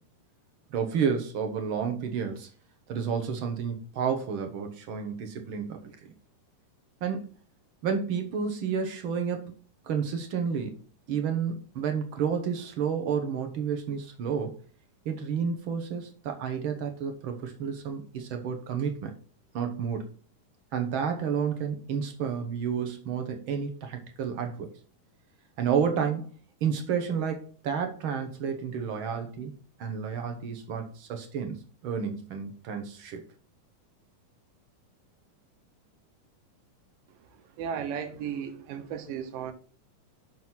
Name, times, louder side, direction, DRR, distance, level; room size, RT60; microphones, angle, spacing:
voice 1, 0.7-2.5 2.9-5.9 7.0-7.3 7.8-9.5 9.8-10.8 11.1-14.5 15.0-19.1 19.5-20.1 20.7-24.7 25.6-26.3 26.6-29.5 29.8-33.2, right 7 dB, 70° right, 1.2 m, -30 dB
voice 2, 37.3-39.5, right 8 dB, 85° right, 2.7 m, -35 dB
6.3 x 6.1 x 5.6 m
omnidirectional pair, 3.8 m